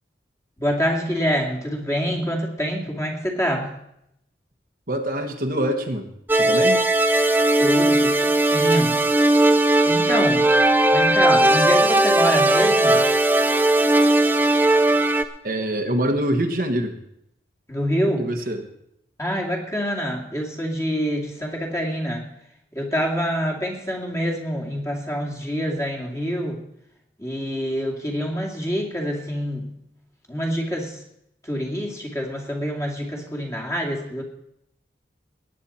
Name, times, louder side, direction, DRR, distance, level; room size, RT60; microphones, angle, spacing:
voice 1, 0.6-3.7 7.6-9.0 9.8-10.5 10.9-13.1 17.7-18.3 19.2-22.3 22.7-26.6 27.2-29.7 30.3-31.0 31.4-34.2, equal, 15° left, 0 dB, 2.3 m, -26 dB
voice 2, 4.9-6.9 15.4-16.9 18.2-18.7, right 1 dB, 50° right, 4 dB, 1.3 m, -25 dB
sound 1, 6.3-15.2, right 1 dB, 10° right, 0.6 m, -18 dB
19.0 x 9.1 x 4.3 m, 0.78 s
head